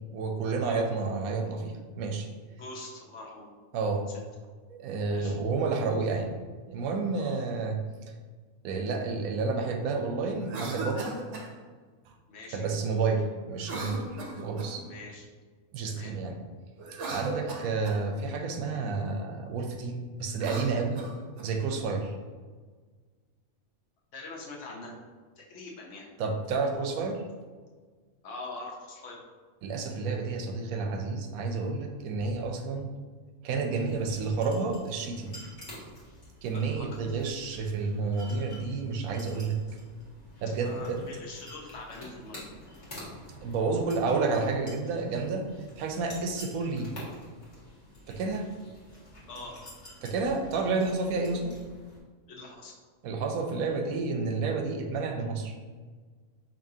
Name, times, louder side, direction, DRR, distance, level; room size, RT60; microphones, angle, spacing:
voice 1, 0.1-2.3 3.7-4.0 4.7-6.4 6.7-7.8 8.6-11.2 12.5-14.8 15.7-16.4 17.1-21.0 21.4-22.1 26.2-27.2 29.6-32.9 33.4-35.4 36.4-39.6 40.4-41.0 43.4-45.4 45.8-46.9 48.1-48.5 50.0-51.5 53.0-55.6, right 4 dB, 90° right, 4 dB, 1.0 m, -30 dB
voice 2, 2.6-3.5 5.1-5.4 7.1-7.4 12.3-12.7 14.2-14.4 14.8-15.3 15.8-16.1 17.4-17.6 24.1-25.0 25.4-26.1 28.2-29.2 36.5-37.2 40.6-42.8 49.3-49.6 52.3-52.7, left 2 dB, 60° left, -2 dB, 1.1 m, -44 dB
Cough, 10.4-11.5 13.6-14.9 16.8-18.0 20.3-21.5, right 2 dB, 65° right, 0.9 m, -37 dB
sound 1, 33.8-52.0, left 1 dB, 35° left, 1.3 m, -49 dB
5.3 x 2.7 x 2.7 m, 1.5 s
omnidirectional pair, 1.5 m